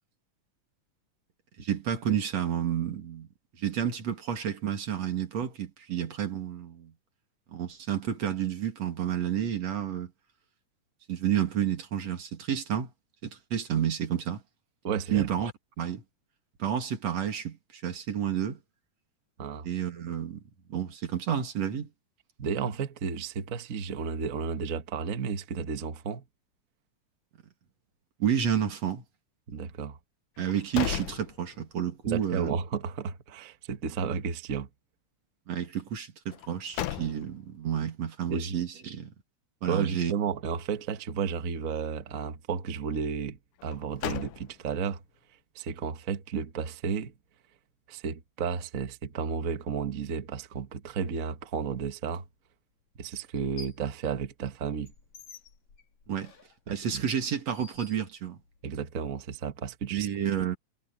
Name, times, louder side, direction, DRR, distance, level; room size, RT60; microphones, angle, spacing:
voice 1, 1.6-3.3 3.6-6.9 7.5-10.1 11.1-12.9 13.2-14.4 15.1-15.5 15.8-16.0 16.6-18.6 19.6-20.4 20.7-21.9 28.2-29.0 30.4-32.5 35.5-39.1 39.6-40.1 56.1-56.3 56.7-58.4 59.9-60.6, right 9 dB, 55° right, 3.4 m, -30 dB
voice 2, 14.8-15.3 19.4-19.7 22.4-26.2 29.5-30.0 32.0-34.7 38.3-38.6 39.7-43.4 43.6-45.0 45.5-47.1 47.9-52.2 53.0-54.9 56.7-57.0 58.6-60.1, right 6 dB, 75° right, 0.7 m, -33 dB
sound 1, 30.4-32.0 32.4-32.5 36.3-37.6 43.6-44.9, left 12 dB, 90° left, 2.6 m, -36 dB
sound 2, 52.1-52.2 53.2-53.9 54.3-58.6, left 5 dB, 60° left, 4.7 m, -52 dB
omnidirectional pair, 3.6 m